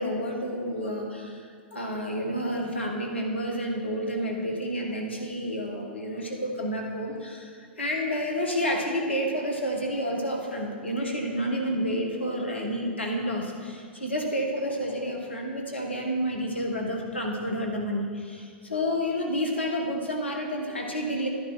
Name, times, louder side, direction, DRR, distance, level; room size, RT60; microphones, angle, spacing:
voice 1, 0.0-21.3, equal, 80° left, 1 dB, 1.7 m, -30 dB
11.0 x 10.5 x 4.4 m, 2.2 s
figure-of-eight pair, 95°, 6 cm